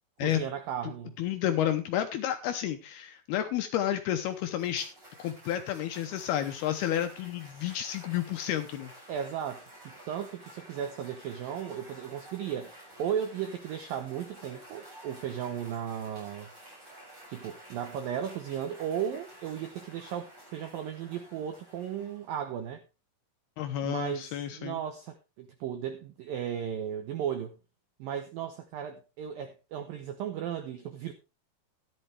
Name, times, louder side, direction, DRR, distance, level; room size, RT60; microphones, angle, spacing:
voice 1, 0.2-1.2 9.1-16.5 17.3-22.8 23.8-27.6 28.0-31.1, right 9 dB, 85° right, 2.0 m, -35 dB
voice 2, 1.2-4.9 5.2-8.9 23.6-24.8, left 11 dB, 75° left, 2.4 m, -31 dB
Cheering / Applause, 3.9-22.6, right 1 dB, 20° right, 7.9 m, -52 dB
13.0 x 11.0 x 3.3 m
omnidirectional pair, 5.4 m